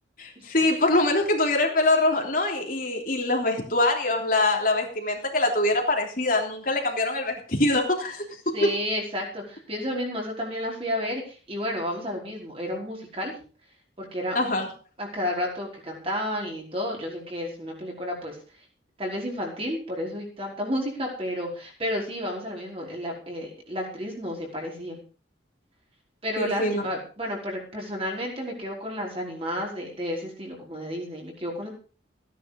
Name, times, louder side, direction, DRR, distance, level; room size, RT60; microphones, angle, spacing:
voice 1, 0.2-8.7 14.3-14.7 26.4-26.8, left 2 dB, 45° left, 1 dB, 3.2 m, -24 dB
voice 2, 8.5-13.3 14.0-14.4 15.0-18.4 19.0-25.0 26.2-31.7, equal, 30° right, -1 dB, 5.0 m, -31 dB
16.0 x 10.0 x 5.3 m, 0.38 s
head